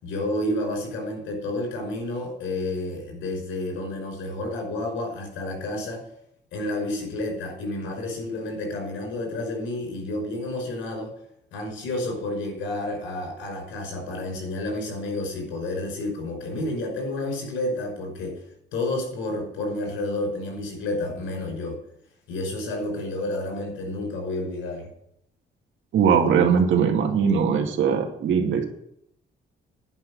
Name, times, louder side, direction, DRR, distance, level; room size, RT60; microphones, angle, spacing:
voice 1, 0.0-6.0 6.5-11.1 11.5-18.4 18.7-21.8 22.3-24.9, left 2 dB, 85° left, 1 dB, 5.6 m, -30 dB
voice 2, 25.9-28.6, right 7 dB, 75° right, 3 dB, 2.2 m, -20 dB
10.5 x 5.9 x 8.7 m, 0.74 s
cardioid pair, 90°, 20 cm